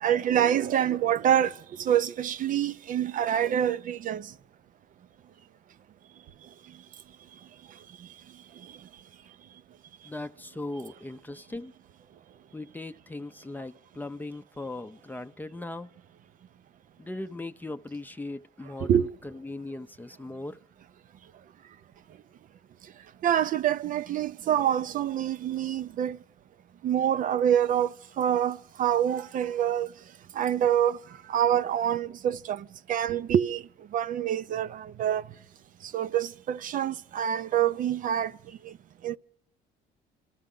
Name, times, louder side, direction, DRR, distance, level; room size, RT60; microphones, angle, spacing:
voice 1, 0.0-1.5 1.8-4.3 18.8-19.1 23.2-26.2 26.8-29.9 30.4-31.0 31.3-33.6 33.9-35.2 35.9-38.3 38.6-38.7 39.0-39.2, right 10 dB, 50° right, 0.6 m, -26 dB
voice 2, 10.0-11.7 12.5-15.9 17.0-20.6, left 2 dB, 10° left, 0.6 m, -39 dB
27.0 x 14.0 x 3.8 m
cardioid pair, 110°, 17 cm